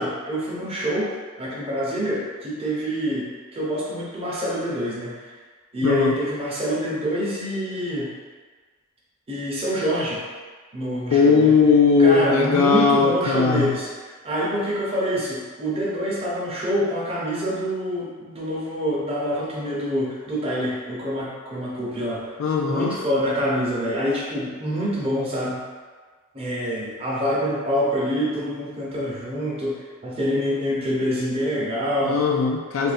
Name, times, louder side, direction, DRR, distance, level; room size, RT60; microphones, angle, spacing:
voice 1, 0.0-5.3 5.7-8.1 9.3-10.2 10.7-11.5 12.0-13.9 14.2-22.3 22.7-25.6 26.3-32.2, equal, 25° right, -6 dB, 0.7 m, -26 dB
voice 2, 5.8-6.2 11.1-13.8 22.4-23.0 32.0-32.9, left 5 dB, 65° left, 1 dB, 0.3 m, -18 dB
2.7 x 2.6 x 4.1 m, 1.5 s
head